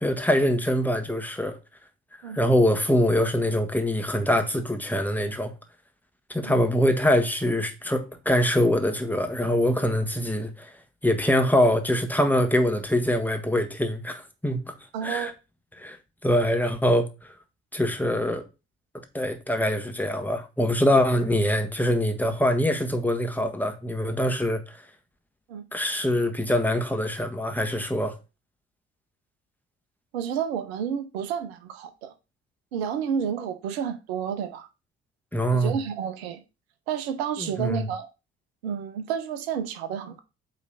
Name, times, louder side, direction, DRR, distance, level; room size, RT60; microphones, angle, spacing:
voice 1, 0.0-1.6 2.3-5.5 6.3-10.7 11.0-14.7 15.0-15.3 15.8-16.0 16.2-17.3 17.7-18.4 19.1-24.8 25.7-28.2 35.3-35.7 37.4-37.9, equal, 5° left, 1.4 m, -24 dB
voice 2, 14.9-15.3 25.5-25.6 30.1-32.1 32.7-34.7 35.5-36.4 36.9-38.1 38.6-40.2, right 8 dB, 70° right, 0.8 m, -30 dB
8.4 x 3.2 x 4.0 m
figure-of-eight pair, 45°, 32 cm